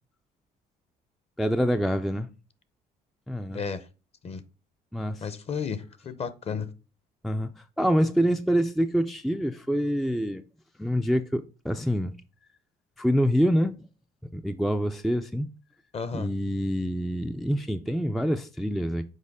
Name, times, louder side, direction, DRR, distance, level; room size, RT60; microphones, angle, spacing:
voice 1, 1.4-2.3 3.3-3.6 4.9-5.2 7.2-7.5 7.8-10.4 10.8-12.1 13.0-13.9 14.3-15.5 16.1-19.0, equal, ahead, 0.3 m, -26 dB
voice 2, 3.5-3.8 4.2-4.4 5.2-6.7 15.9-16.3, left 6 dB, 35° left, 0.8 m, -33 dB
6.5 x 4.6 x 3.5 m
cardioid pair, 110°, 17 cm